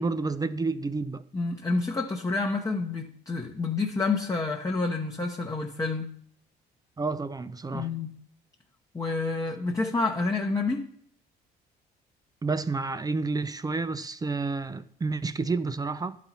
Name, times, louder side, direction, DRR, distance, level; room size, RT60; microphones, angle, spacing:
voice 1, 0.0-1.2 7.0-7.9 12.4-16.2, right 3 dB, 20° right, 0.5 m, -30 dB
voice 2, 1.3-6.1 7.7-8.2 8.9-10.9, left 3 dB, 15° left, 0.8 m, -29 dB
11.5 x 4.2 x 4.1 m
supercardioid pair, 70°, 19 cm